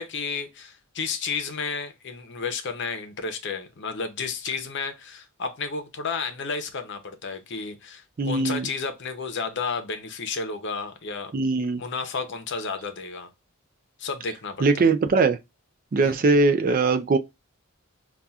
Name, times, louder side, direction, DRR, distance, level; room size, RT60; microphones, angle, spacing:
voice 1, 0.0-11.3 11.8-13.3 14.0-14.9 16.0-16.2, left 5 dB, 55° left, 0.7 m, -32 dB
voice 2, 8.2-8.7 11.3-11.8 14.6-15.4 15.9-17.2, right 3 dB, 40° right, 0.3 m, -21 dB
5.5 x 2.4 x 2.3 m
head